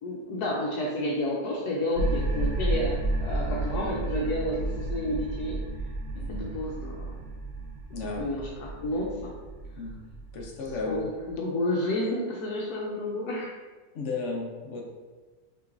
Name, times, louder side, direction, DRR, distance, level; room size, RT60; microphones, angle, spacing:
voice 1, 0.0-5.6 6.3-7.2 8.2-9.3 10.9-13.5, left 1 dB, 85° left, -3 dB, 1.2 m, -30 dB
sound 1, 1.9-11.3, right 2 dB, 45° right, 0.9 m, -32 dB
voice 2, 6.1-6.6 7.9-8.3 9.8-10.0 10.3-11.0 13.9-14.8, left 3 dB, 55° left, 0 dB, 1.0 m, -34 dB
5.6 x 3.0 x 2.5 m, 1.3 s
omnidirectional pair, 1.6 m